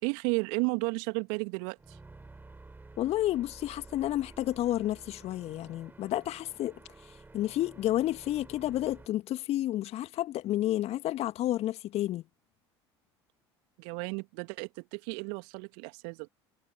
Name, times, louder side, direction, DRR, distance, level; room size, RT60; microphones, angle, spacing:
voice 1, 0.0-2.0 13.8-16.3, right 37 dB, 60° right, 2.7 m, -33 dB
sound 1, 1.8-9.1, right 3 dB, 15° right, 7.4 m, -52 dB
voice 2, 3.0-6.8 7.3-12.2, left 14 dB, 45° left, 2.0 m, -30 dB
figure-of-eight pair, 70°, 14 cm